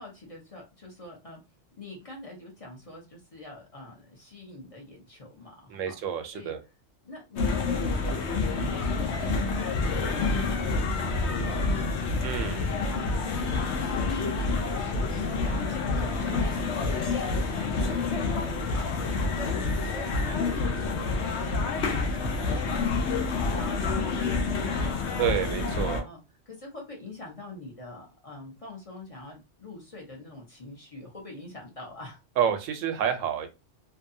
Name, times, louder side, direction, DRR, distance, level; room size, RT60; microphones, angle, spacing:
voice 1, 0.0-1.4 1.8-6.0 6.3-6.5 7.0-25.5 25.9-26.2 26.5-32.2, left 2 dB, 35° left, -1 dB, 0.7 m, -45 dB
voice 2, 5.7-6.6 12.2-12.6 25.2-26.1 32.4-33.5, right 8 dB, 80° right, 7 dB, 1.0 m, -28 dB
sound 1, 7.4-26.0, left 3 dB, 65° left, 0.8 m, -28 dB
2.7 x 2.2 x 2.6 m, 0.26 s
omnidirectional pair, 1.3 m